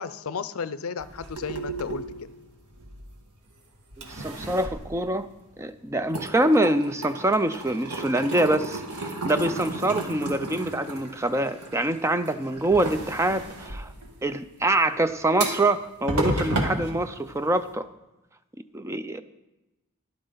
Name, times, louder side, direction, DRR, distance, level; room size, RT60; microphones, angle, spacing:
voice 1, 0.0-2.0, left 5 dB, 70° left, 0.5 m, -33 dB
sound 1, 1.0-3.5 3.9-5.7 6.0-17.7, right 2 dB, 85° right, 1.5 m, -33 dB
voice 2, 4.1-5.3 5.6-13.9 14.2-17.9 18.7-19.2, right 1 dB, 10° right, 0.4 m, -25 dB
12.5 x 11.0 x 3.9 m
head